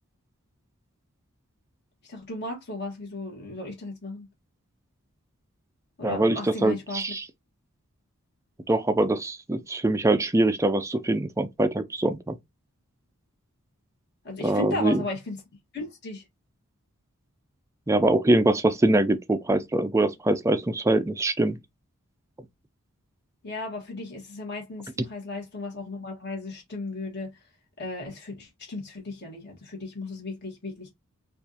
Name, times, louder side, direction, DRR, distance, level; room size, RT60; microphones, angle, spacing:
voice 1, 2.0-4.3 6.0-7.0 14.2-15.4 15.7-16.2 23.4-27.5 27.8-30.9, left 3 dB, 50° left, 1.3 m, -35 dB
voice 2, 6.0-7.2 8.7-12.4 14.4-15.0 17.9-21.6, right 2 dB, 15° right, 0.3 m, -23 dB
4.5 x 2.4 x 2.7 m
head